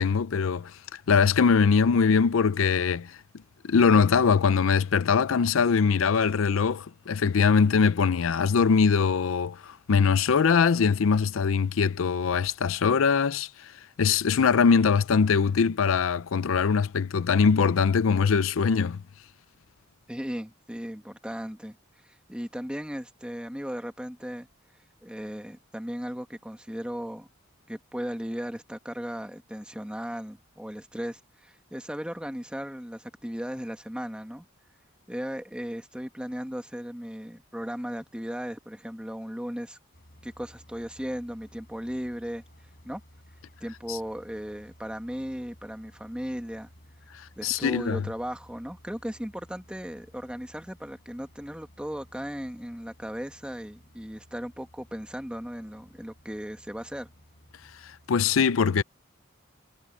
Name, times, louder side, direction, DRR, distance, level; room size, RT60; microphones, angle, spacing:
voice 1, 0.0-3.2 3.6-13.7 14.0-19.0 43.9-44.0 47.4-48.0 57.8-58.8, left 5 dB, 80° left, 0.5 m, -22 dB
voice 2, 20.1-21.8 22.3-24.5 25.0-27.3 27.7-34.4 35.1-39.8 40.2-42.4 42.8-43.0 43.6-46.7 47.4-57.1, equal, 5° right, 1.7 m, -36 dB
sound 1, 39.9-58.1, equal, 50° left, 6.3 m, -56 dB
head